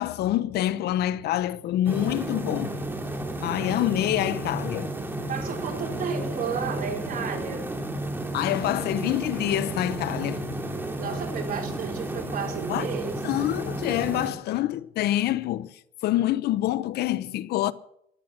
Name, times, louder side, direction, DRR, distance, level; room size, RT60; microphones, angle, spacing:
voice 1, 0.0-2.8 3.4-4.9 8.3-10.5 12.7-12.9 13.2-17.7, left 13 dB, 70° left, 0.7 m, -26 dB
sound 1, 1.9-14.3, right 1 dB, 10° right, 2.6 m, -32 dB
voice 2, 5.3-7.7 11.0-13.2, right 6 dB, 55° right, 4.2 m, -32 dB
15.0 x 12.0 x 6.1 m
cardioid pair, 110°, 17 cm